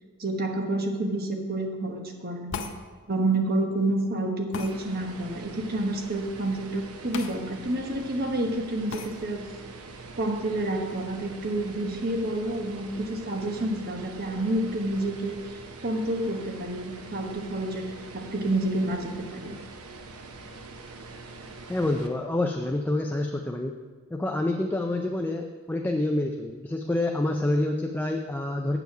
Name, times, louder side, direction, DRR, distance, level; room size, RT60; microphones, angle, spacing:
voice 1, 0.2-2.6 3.1-9.4 10.2-15.4 15.8-19.6, right 1 dB, 45° right, 3 dB, 1.2 m, -29 dB
sound 1, 2.5-2.8 4.5-4.7 7.1-7.4 7.7-7.8 8.9-9.1, left 5 dB, 60° left, 0.7 m, -35 dB
sound 2, 4.6-22.1, right 3 dB, 80° right, 0.9 m, -44 dB
voice 2, 21.7-23.8 24.1-28.8, left 1 dB, 10° left, 3 dB, 0.4 m, -27 dB
8.1 x 7.0 x 6.0 m, 1.5 s
head